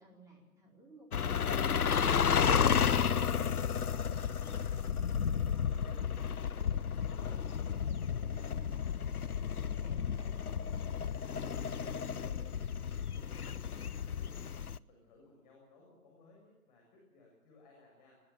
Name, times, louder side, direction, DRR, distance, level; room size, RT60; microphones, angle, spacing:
voice 1, 0.0-1.9 2.3-4.6 5.0-6.2 6.5-8.9 9.4-12.5, right 1 dB, 5° right, -2 dB, 4.4 m, -57 dB
sound 1, 1.1-14.8, left 7 dB, 80° left, 0.8 m, -32 dB
voice 2, 9.7-10.0 13.4-18.2, left 3 dB, 30° left, -1 dB, 7.7 m, -62 dB
21.5 x 20.0 x 7.1 m, 1.1 s
figure-of-eight pair, 145°, 44 cm